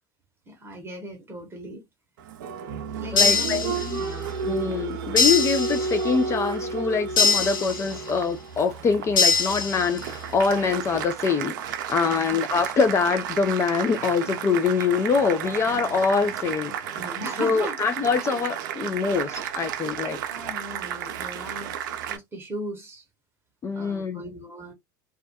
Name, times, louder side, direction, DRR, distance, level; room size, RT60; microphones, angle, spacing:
voice 1, 0.5-1.8 3.0-4.3 12.0-12.4 17.0-17.8 20.3-23.1 23.7-24.7, right 1 dB, 20° right, 0.8 m, -38 dB
Applause, 2.2-22.2, right 7 dB, 65° right, 0.4 m, -32 dB
voice 2, 3.1-4.0 4.4-17.0 17.4-20.2 23.6-24.2, left 5 dB, 25° left, 0.3 m, -24 dB
sound 1, 3.2-4.2 5.2-6.2 7.2-8.2 9.2-10.2, left 4 dB, 80° left, 0.7 m, -23 dB
2.3 x 2.2 x 2.7 m
hypercardioid pair, 80°, 11 cm